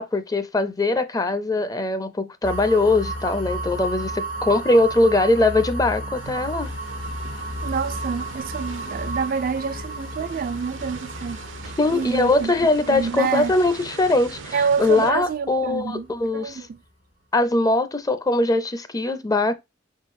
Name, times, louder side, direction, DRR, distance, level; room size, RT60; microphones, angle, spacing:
voice 1, 0.0-6.7 11.8-16.7 17.3-19.5, left 2 dB, 20° left, 0.5 m, -21 dB
sound 1, 2.4-16.2, right 1 dB, 85° left, 1.7 m, -33 dB
sound 2, 6.2-15.1, right 5 dB, 85° right, 0.7 m, -41 dB
voice 2, 7.6-12.6 12.9-13.5 14.5-16.1 16.3-16.8, right 6 dB, 45° right, 0.3 m, -27 dB
5.6 x 3.7 x 2.5 m
head